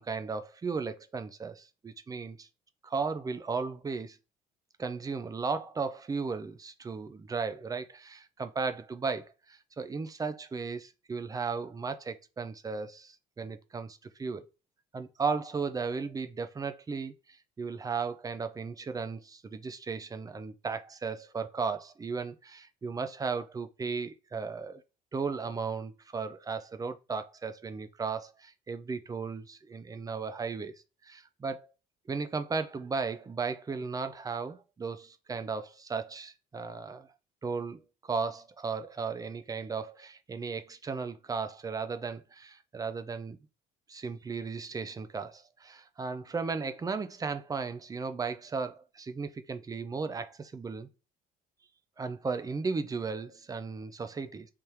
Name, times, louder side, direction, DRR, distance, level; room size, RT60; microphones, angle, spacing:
voice 1, 0.0-2.5 2.8-4.2 4.8-14.4 14.9-24.8 25.1-30.7 31.0-31.7 32.1-37.1 37.4-43.4 43.9-50.9 52.0-54.5, right 4 dB, 20° right, 0.4 m, -35 dB
3.4 x 3.3 x 2.9 m
cardioid pair, 110°, 17 cm